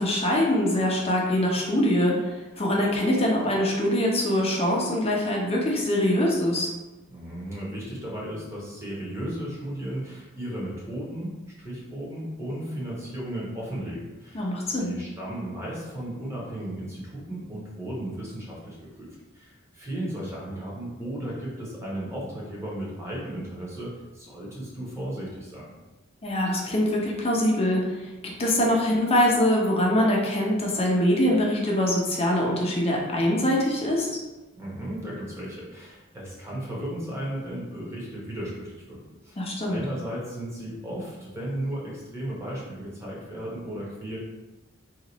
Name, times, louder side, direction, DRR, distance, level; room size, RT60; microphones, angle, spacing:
voice 1, 0.0-2.1 2.6-6.7 14.3-14.9 26.2-27.8 28.4-34.1 39.4-39.8, left 1 dB, 30° left, -2 dB, 0.7 m, -23 dB
voice 2, 7.1-18.9 19.3-25.7 34.5-39.0 39.2-44.2, right 1 dB, 15° right, -6 dB, 1.0 m, -35 dB
2.9 x 2.5 x 3.9 m, 1.1 s
head